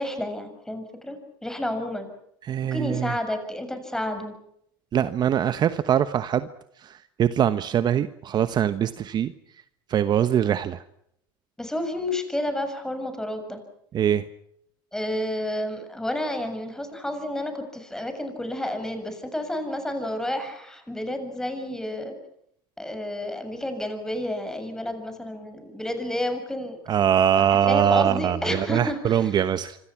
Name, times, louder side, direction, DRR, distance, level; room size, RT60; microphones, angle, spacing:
voice 1, 0.0-2.1 2.7-4.3 11.6-13.6 14.9-22.2 22.8-26.8 27.7-29.3, left 1 dB, 5° left, 7 dB, 6.8 m, -30 dB
voice 2, 2.4-3.1 4.9-6.5 6.8-9.3 9.9-10.8 13.9-14.2 26.9-29.8, right 9 dB, 35° right, 12 dB, 1.2 m, -23 dB
26.5 x 26.0 x 6.0 m, 0.74 s
supercardioid pair, 110°, 12 cm